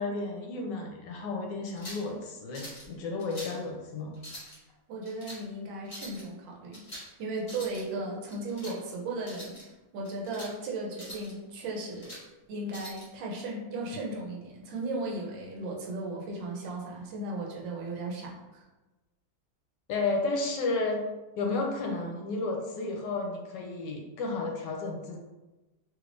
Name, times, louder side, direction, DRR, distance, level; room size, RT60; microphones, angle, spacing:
voice 1, 0.0-4.1 19.9-21.0 21.4-25.2, left 3 dB, 75° left, 1 dB, 1.2 m, -32 dB
sound 1, 1.6-2.1 2.5-2.9 3.2-3.6 4.1-4.6 5.0-5.4 5.8-6.2 6.7-7.1 7.4-7.8 8.3-8.8 9.2-9.6 10.0-10.5 10.9-11.3 11.7-12.2 12.7-13.1, equal, 40° left, 1.3 m, -44 dB
voice 2, 4.9-12.2 12.5-18.6, right 2 dB, 90° right, -2 dB, 1.4 m, -36 dB
3.2 x 2.5 x 3.3 m, 1.1 s
omnidirectional pair, 2.0 m